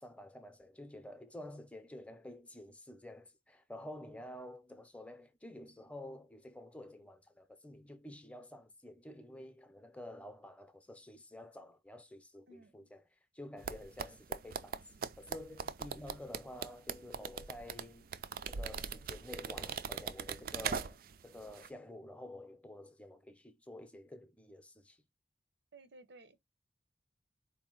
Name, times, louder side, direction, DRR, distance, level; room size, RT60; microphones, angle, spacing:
voice 1, 0.0-13.0 13.3-18.1 18.4-25.0, left 1 dB, 10° left, 0.7 m, -50 dB
voice 2, 12.5-12.9 25.7-26.4, right 2 dB, 75° right, 0.9 m, -57 dB
sound 1, 13.6-21.2 21.5-21.7, right 6 dB, 55° right, 0.4 m, -40 dB
4.5 x 2.8 x 3.7 m
head